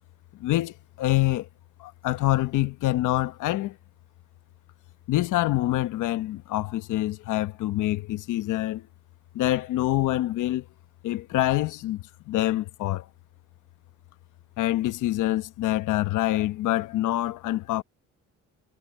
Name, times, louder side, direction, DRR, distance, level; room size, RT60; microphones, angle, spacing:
voice 1, 0.4-1.5 1.8-3.8 5.1-8.9 9.3-10.6 11.0-13.1 14.6-17.8, left 16 dB, 90° left, 1.1 m, -26 dB
cardioid pair, 90°, 30 cm